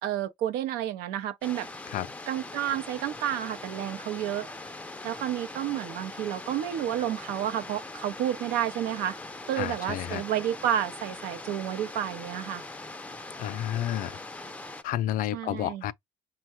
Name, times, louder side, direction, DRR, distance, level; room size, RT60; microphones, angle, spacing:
voice 1, 0.0-1.7 2.3-4.5 5.0-9.2 9.5-12.6 15.3-15.9, right 11 dB, 75° right, 0.6 m, -30 dB
sound 1, 1.4-14.8, left 2 dB, 10° left, 0.5 m, -41 dB
voice 2, 9.6-10.2 13.4-14.2 14.8-15.9, left 12 dB, 60° left, 0.4 m, -30 dB
5.5 x 2.2 x 3.0 m
cardioid pair, 100°, 16 cm